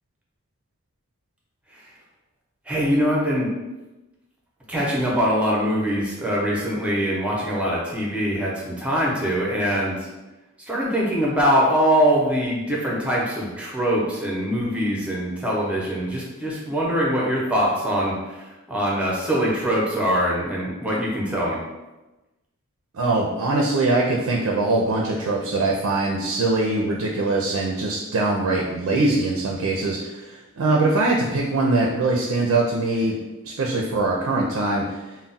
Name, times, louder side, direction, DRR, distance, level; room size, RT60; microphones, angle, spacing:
voice 1, 2.7-3.5 4.7-9.9 10.7-18.1 18.7-21.6, equal, 5° right, -4 dB, 0.6 m, -23 dB
voice 2, 22.9-33.2 33.4-35.0, right 2 dB, 85° right, -1 dB, 0.4 m, -22 dB
2.3 x 2.0 x 3.8 m, 1.1 s
head